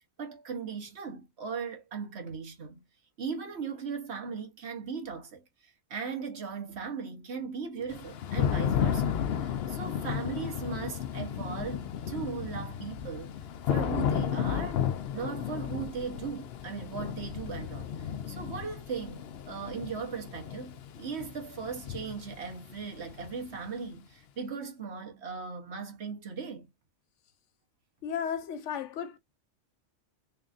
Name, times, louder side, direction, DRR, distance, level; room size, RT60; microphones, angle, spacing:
voice 1, 0.0-2.8 3.2-13.3 13.7-14.9 15.1-26.7, right 5 dB, 65° right, 1.4 m, -38 dB
Thunder / Rain, 7.9-23.7, left 9 dB, 65° left, 0.8 m, -33 dB
voice 2, 28.0-29.2, left 8 dB, 85° left, 1.0 m, -34 dB
3.8 x 3.3 x 2.4 m
omnidirectional pair, 1.2 m